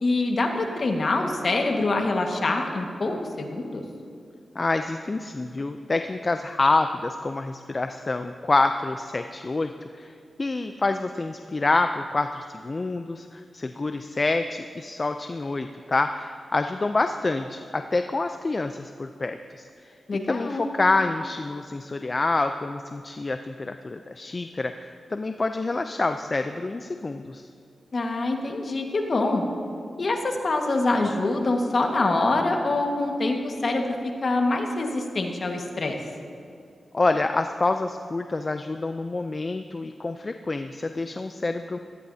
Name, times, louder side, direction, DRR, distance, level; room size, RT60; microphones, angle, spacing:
voice 1, 0.0-3.8 20.1-20.7 27.9-29.4 30.0-33.9 34.2-36.0, left 2 dB, 55° left, 2 dB, 1.6 m, -25 dB
voice 2, 4.5-10.1 10.4-19.7 20.1-27.5 36.9-41.8, left 3 dB, 40° left, 7 dB, 0.5 m, -27 dB
18.0 x 13.5 x 2.8 m, 2.4 s
cardioid pair, 55°, 0 cm